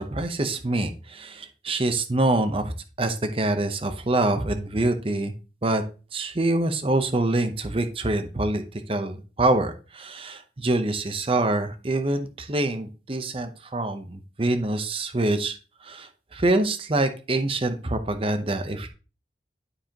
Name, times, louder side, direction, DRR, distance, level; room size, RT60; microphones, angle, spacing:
voice 1, 0.0-5.3 5.6-5.8 6.1-15.6 15.8-18.9, right 2 dB, 30° right, 8 dB, 0.7 m, -25 dB
11.5 x 4.8 x 2.9 m, 0.34 s
head